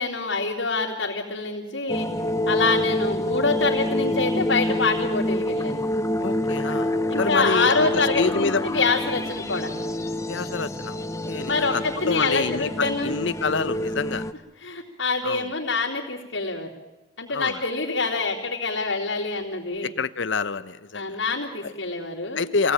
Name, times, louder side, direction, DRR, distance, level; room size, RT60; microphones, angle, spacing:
voice 1, 0.0-2.1 2.5-5.8 7.1-9.7 11.5-13.2 14.6-16.7 17.2-19.9 20.9-22.5, left 3 dB, 90° left, -6 dB, 3.7 m, -26 dB
sound 1, 1.9-14.3, left 1 dB, 15° left, 1.0 m, -27 dB
voice 2, 6.2-8.6 10.3-14.2 15.2-15.5 17.3-17.6 19.8-21.2 21.6-21.7 22.4-22.7, left 4 dB, 70° left, 14 dB, 0.9 m, -27 dB
26.5 x 18.0 x 9.0 m, 1.1 s
head